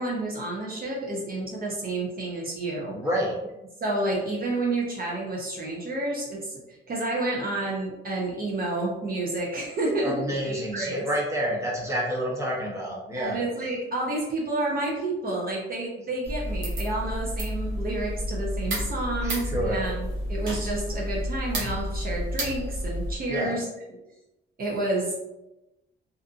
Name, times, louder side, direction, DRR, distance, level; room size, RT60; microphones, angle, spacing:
voice 1, 0.0-3.0 3.8-10.1 10.4-11.0 13.2-23.7 24.6-25.1, right 2 dB, 45° right, -3 dB, 0.7 m, -30 dB
voice 2, 2.9-3.3 10.0-13.4 19.2-19.8 23.3-23.6, equal, 15° right, -3 dB, 0.8 m, -29 dB
sound 1, 16.2-23.2, equal, 65° right, 1.1 m, -30 dB
2.6 x 2.4 x 2.5 m, 0.95 s
cardioid pair, 95°, 21 cm